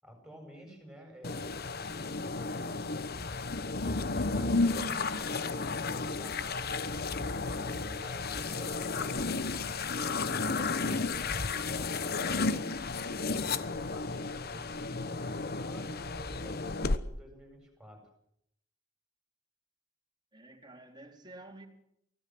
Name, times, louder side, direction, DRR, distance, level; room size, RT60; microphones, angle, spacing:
voice 1, 0.0-3.0 3.8-9.4 10.3-12.4 13.7-18.0, equal, 5° right, 7.8 m, -51 dB
sound 1, 1.2-17.0, left 3 dB, 50° left, 1.1 m, -33 dB
voice 2, 20.3-21.7, right 2 dB, 20° right, 3.5 m, -50 dB
24.0 x 16.5 x 7.8 m
head